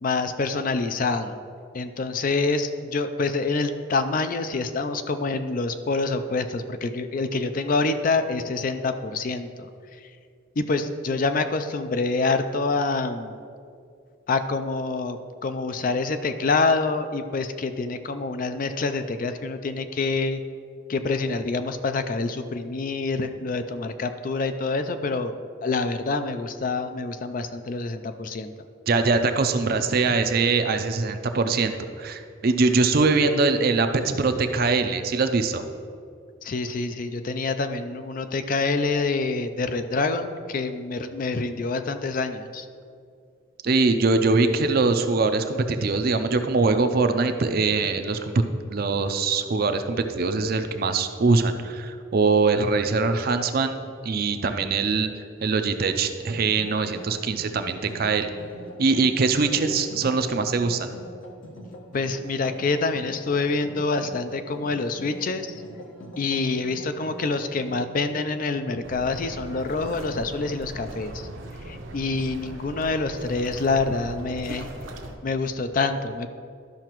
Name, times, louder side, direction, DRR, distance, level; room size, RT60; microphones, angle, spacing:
voice 1, 0.0-1.4 1.7-10.1 10.6-13.4 14.3-20.4 20.9-25.3 25.6-28.5 36.4-42.7 61.9-65.6 66.2-71.3 71.6-74.7 75.2-76.3, left 3 dB, 45° left, 9 dB, 0.4 m, -26 dB
voice 2, 28.9-33.9 34.2-35.6 43.6-48.4 48.7-55.1 55.4-58.3 58.8-60.9, right 4 dB, 50° right, 8 dB, 0.5 m, -22 dB
sound 1, 56.2-70.3, equal, 70° left, 1.1 m, -44 dB
sound 2, 68.8-75.2, right 1 dB, 75° right, 0.8 m, -38 dB
13.0 x 5.7 x 3.0 m, 2.3 s
head